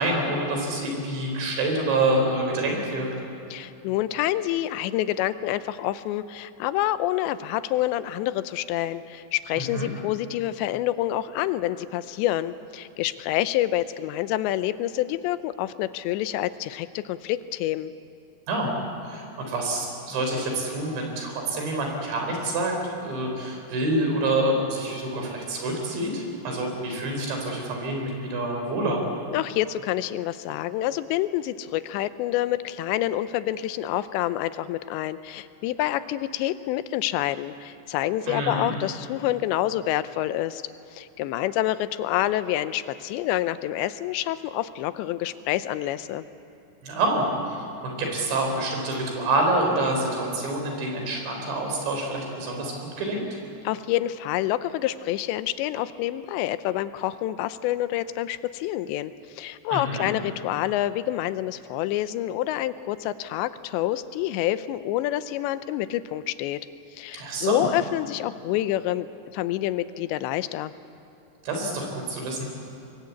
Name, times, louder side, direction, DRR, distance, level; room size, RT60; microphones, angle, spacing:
voice 1, 0.0-3.1 9.6-9.9 18.5-18.8 19.0-22.7 23.0-29.0 38.3-38.7 46.8-47.6 47.8-53.2 59.7-60.1 67.1-67.7 71.4-72.5, right 2 dB, 85° right, 2 dB, 6.5 m, -27 dB
voice 2, 3.5-17.9 29.3-40.6 40.9-46.2 53.6-66.6 66.9-69.1 69.3-70.7, left 14 dB, 90° left, 13 dB, 3.0 m, -27 dB
25.5 x 21.0 x 8.4 m, 2.7 s
omnidirectional pair, 5.0 m